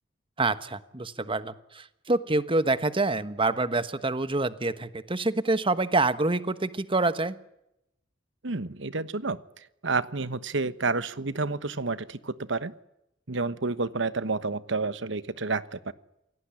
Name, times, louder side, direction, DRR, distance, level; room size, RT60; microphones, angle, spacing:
voice 1, 0.4-7.4, right 2 dB, 30° right, 12 dB, 1.3 m, -26 dB
voice 2, 8.4-9.4 9.8-12.7 13.3-15.9, right 3 dB, 70° right, 14 dB, 1.2 m, -30 dB
27.5 x 18.0 x 10.0 m, 0.86 s
head